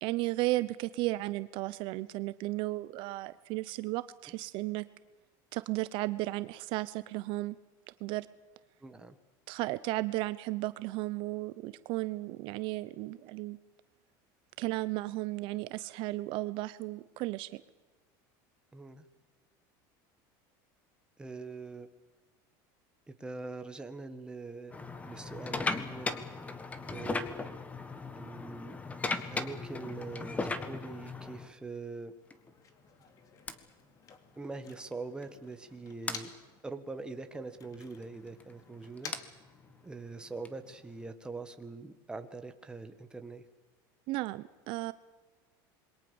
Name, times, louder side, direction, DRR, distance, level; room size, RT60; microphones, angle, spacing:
voice 1, 0.0-4.8 5.5-7.6 8.0-8.3 9.5-13.6 14.6-17.6 44.1-44.9, right 19 dB, 55° right, 15 dB, 0.8 m, -34 dB
voice 2, 8.8-9.2 18.7-19.0 21.2-21.9 23.1-24.8 25.0-26.2 26.9-27.3 28.1-28.8 29.3-32.1 34.4-36.3 36.6-39.1 39.8-43.4, right 3 dB, 10° right, 8 dB, 1.7 m, -43 dB
sound 1, 24.7-31.5 32.3-32.5 33.5-33.6 34.9-35.0 35.2-35.4 36.1-36.2 38.0-41.1, left 3 dB, 15° left, 1.6 m, -37 dB
Motor vehicle (road), 32.2-36.6 36.9-40.2, left 6 dB, 35° left, 2.8 m, -52 dB
27.0 x 22.5 x 7.2 m, 1.2 s
cardioid pair, 150°, 10 cm